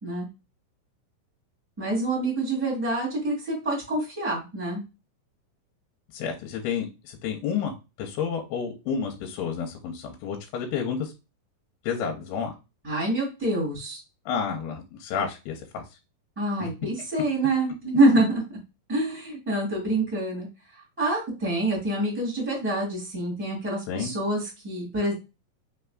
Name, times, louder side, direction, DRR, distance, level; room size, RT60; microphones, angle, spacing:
voice 1, 1.8-4.8 12.8-14.0 16.3-18.3 18.9-20.5 21.0-25.1, right 1 dB, 5° right, -3 dB, 1.0 m, -26 dB
voice 2, 6.1-11.1 11.8-12.5 14.3-15.8 16.6-16.7 23.9-24.1, left 7 dB, 90° left, 2 dB, 2.6 m, -30 dB
5.6 x 3.3 x 2.3 m, 0.27 s
omnidirectional pair, 4.6 m